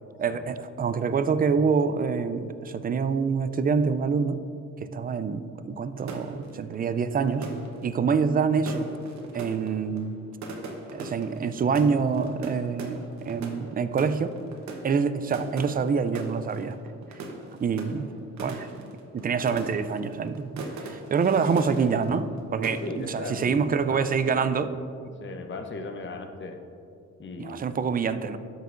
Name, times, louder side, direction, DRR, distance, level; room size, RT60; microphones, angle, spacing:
voice 1, 0.2-4.4 4.8-7.5 7.8-8.9 9.3-10.1 10.9-14.3 14.8-16.8 17.6-18.1 18.4-24.7 27.4-28.4, right 5 dB, 30° right, 12 dB, 0.4 m, -26 dB
sound 1, 6.0-22.4 22.6-23.2, right 2 dB, 65° right, 1.0 m, -40 dB
voice 2, 22.8-24.6 25.2-26.6 27.2-27.6, left 3 dB, 40° left, 5 dB, 0.8 m, -37 dB
12.5 x 5.6 x 2.6 m, 2.5 s
cardioid pair, 90°, 30 cm